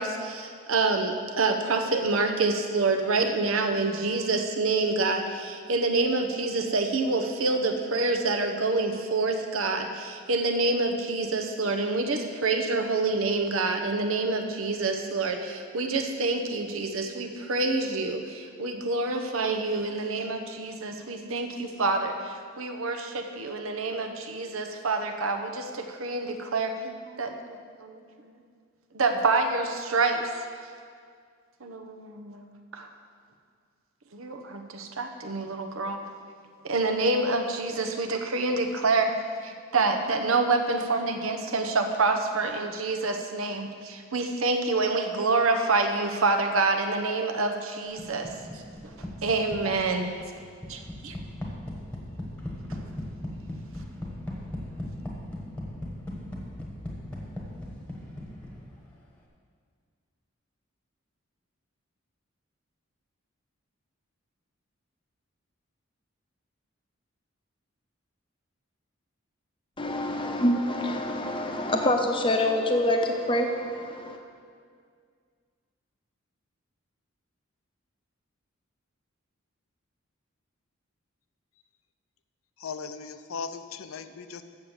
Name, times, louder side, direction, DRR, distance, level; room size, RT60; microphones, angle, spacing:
voice 1, 0.0-27.4 27.8-28.0 28.9-30.3 31.6-32.9 34.1-36.0 36.6-39.1 39.4-48.3 48.5-50.1 50.7-51.2, right 3 dB, 80° right, 0.9 m, -27 dB
sound 1, 48.0-58.9, left 1 dB, 5° left, 1.2 m, -38 dB
voice 2, 69.8-74.2, left 1 dB, 25° left, 0.8 m, -26 dB
voice 3, 82.6-84.4, left 5 dB, 85° left, 0.5 m, -37 dB
7.6 x 7.1 x 7.1 m
head